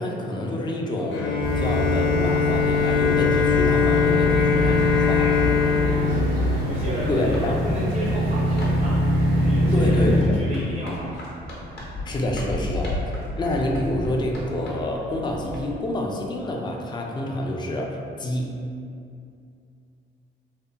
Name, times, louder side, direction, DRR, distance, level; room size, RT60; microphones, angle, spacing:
voice 1, 0.0-5.3 7.1-7.6 9.7-10.4 12.1-12.9 13.4-18.5, left 1 dB, 20° left, 0 dB, 0.3 m, -27 dB
Bowed string instrument, 1.1-7.1, left 7 dB, 85° left, 0.4 m, -22 dB
sound 1, 1.4-10.2, equal, 85° right, 0.8 m, -24 dB
voice 2, 5.5-9.0 9.3-11.3, right 1 dB, 40° right, -6 dB, 0.5 m, -33 dB
sound 2, 7.1-15.7, left 1 dB, 55° left, 0.8 m, -35 dB
2.7 x 2.4 x 2.2 m, 2.5 s
cardioid pair, 90°, 20 cm